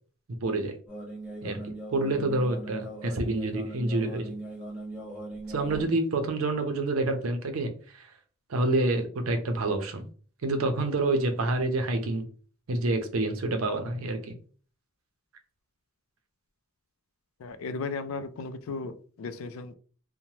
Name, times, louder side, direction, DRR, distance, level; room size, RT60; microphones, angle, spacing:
voice 1, 0.4-0.8 1.4-1.6 1.9-4.3 5.5-8.1 8.5-10.0 10.4-12.3 12.7-14.3, right 2 dB, 85° right, 0.6 m, -28 dB
sound 1, 0.9-5.9, right 1 dB, 5° right, 1.1 m, -40 dB
voice 2, 17.4-19.7, left 4 dB, 80° left, 0.4 m, -36 dB
3.1 x 2.1 x 2.8 m
head